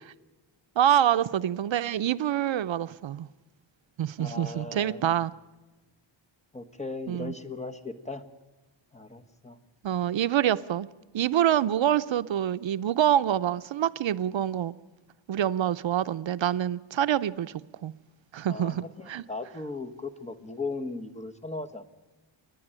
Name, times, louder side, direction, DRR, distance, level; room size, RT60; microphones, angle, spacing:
voice 1, 0.8-3.3 4.0-5.3 7.1-7.3 9.8-10.9 11.1-14.7 15.3-17.9 18.3-19.2, right 11 dB, 70° right, 0.6 m, -26 dB
voice 2, 4.2-5.1 6.5-8.2 8.9-9.6 18.5-21.8, left 3 dB, 15° left, 1.3 m, -37 dB
29.5 x 10.5 x 10.0 m
wide cardioid pair, 155°, 48 cm